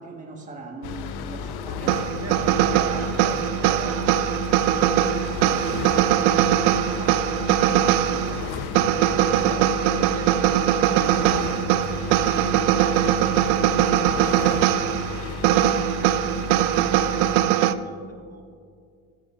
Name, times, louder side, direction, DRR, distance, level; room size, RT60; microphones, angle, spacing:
voice 1, 0.0-2.9 3.2-3.4 4.5-5.3 6.9-9.6, right 2 dB, 15° right, 1 dB, 1.4 m, -42 dB
sound 1, 0.8-17.4, left 5 dB, 55° left, 0.9 m, -33 dB
voice 2, 1.8-7.0 9.1-13.5 13.9-18.4, right 3 dB, 35° right, 3 dB, 1.6 m, -43 dB
sound 2, 1.9-17.7, right 12 dB, 70° right, 0.6 m, -21 dB
13.5 x 13.5 x 2.5 m, 2.3 s
hypercardioid pair, 70°, 45 cm